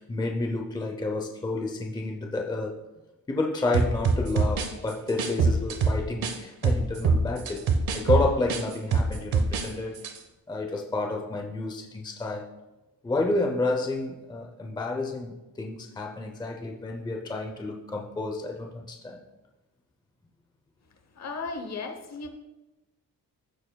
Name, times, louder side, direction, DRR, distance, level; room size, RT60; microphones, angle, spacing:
voice 1, 0.0-2.8 3.3-7.7 7.9-9.9 10.5-12.5 13.0-19.2, left 2 dB, 10° left, 1 dB, 0.6 m, -30 dB
sound 1, 3.7-6.4 6.6-9.7 10.0-10.2, right 4 dB, 80° right, 1.0 m, -24 dB
voice 2, 21.2-22.3, left 4 dB, 50° left, 6 dB, 0.9 m, -35 dB
14.0 x 6.9 x 2.3 m, 1.0 s
wide cardioid pair, 175°, 35 cm